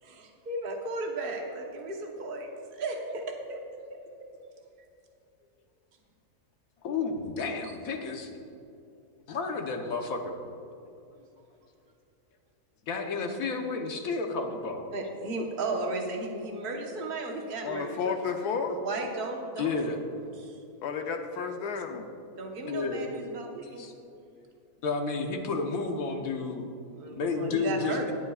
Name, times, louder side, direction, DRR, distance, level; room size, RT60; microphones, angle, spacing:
voice 1, 0.0-3.2 3.5-3.6 3.9-4.3 14.9-18.1 18.7-20.0 20.4-20.6 22.4-23.8 26.9-28.1, right 2 dB, 40° right, 1 dB, 1.2 m, -35 dB
voice 2, 6.8-8.3 9.3-10.3 12.9-14.9 19.6-20.0 22.7-23.1 23.8-23.9 24.8-26.7 27.2-28.1, left 4 dB, 65° left, 4 dB, 1.4 m, -31 dB
voice 3, 17.6-18.8 20.8-22.1, left 6 dB, 90° left, 5 dB, 1.3 m, -32 dB
22.5 x 8.0 x 2.4 m, 2.6 s
omnidirectional pair, 1.6 m